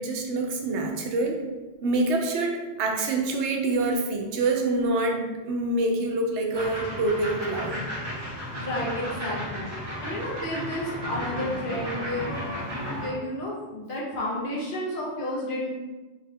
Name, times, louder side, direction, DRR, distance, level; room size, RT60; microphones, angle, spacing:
voice 1, 0.0-1.4 1.8-7.8, right 2 dB, 85° right, 2 dB, 0.9 m, -26 dB
sound 1, 6.5-13.1, equal, 25° right, 0.8 m, -34 dB
voice 2, 8.5-9.7 10.0-15.7, left 1 dB, 55° left, -4 dB, 0.9 m, -32 dB
3.2 x 2.3 x 3.4 m, 1.2 s
omnidirectional pair, 1.1 m